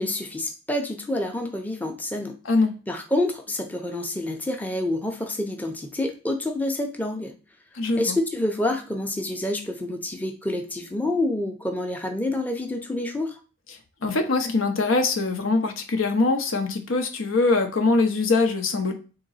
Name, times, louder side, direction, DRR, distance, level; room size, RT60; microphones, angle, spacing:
voice 1, 0.0-2.4 2.9-7.3 7.9-13.4, left 1 dB, 10° left, 3 dB, 0.5 m, -28 dB
voice 2, 7.7-8.2 14.0-18.9, left 3 dB, 85° left, 5 dB, 0.8 m, -22 dB
3.9 x 2.9 x 4.0 m, 0.35 s
head